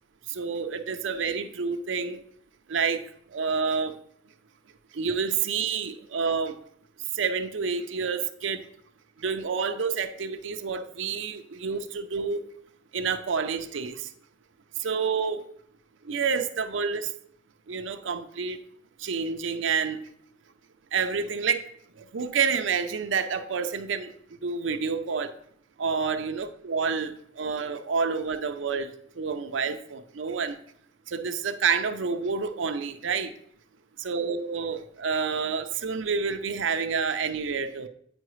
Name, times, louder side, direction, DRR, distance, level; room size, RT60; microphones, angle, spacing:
voice 1, 0.3-2.2 2.7-3.0 3.3-4.0 4.9-6.6 7.1-8.6 9.2-12.4 12.9-14.1 14.8-15.4 16.0-17.1 17.7-18.6 19.0-20.0 20.9-21.6 22.0-24.1 24.4-25.3 25.8-30.6 31.1-33.3 34.0-37.9, right 5 dB, 80° right, 8 dB, 0.6 m, -28 dB
8.9 x 4.7 x 3.1 m, 0.64 s
head